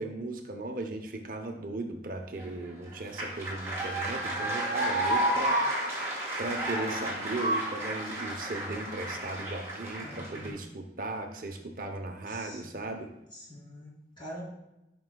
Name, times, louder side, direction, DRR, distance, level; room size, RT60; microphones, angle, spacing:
voice 1, 0.0-5.6 6.4-13.1, right 2 dB, 50° right, 3 dB, 0.8 m, -37 dB
sound 1, 2.4-10.5, right 1 dB, 15° right, 2.8 m, -31 dB
voice 2, 10.0-10.6 12.3-12.7 13.3-14.5, equal, 25° left, -6 dB, 3.0 m, -45 dB
13.0 x 6.1 x 2.3 m, 0.91 s
head